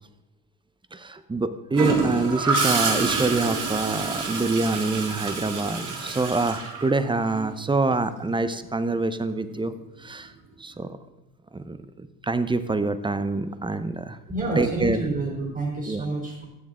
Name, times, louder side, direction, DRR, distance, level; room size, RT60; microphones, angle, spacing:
voice 1, 0.9-9.7 10.0-10.3 10.6-10.9 11.5-11.8 12.2-14.2 14.6-15.0 15.9-16.0, right 3 dB, 15° right, 12 dB, 0.7 m, -25 dB
Gurgling / Toilet flush, 1.7-7.5 9.5-9.7, right 4 dB, 55° right, 2.8 m, -27 dB
voice 2, 14.3-16.4, right 2 dB, 30° right, -2 dB, 3.3 m, -28 dB
14.0 x 7.7 x 3.7 m, 1.0 s
supercardioid pair, 90°, 37 cm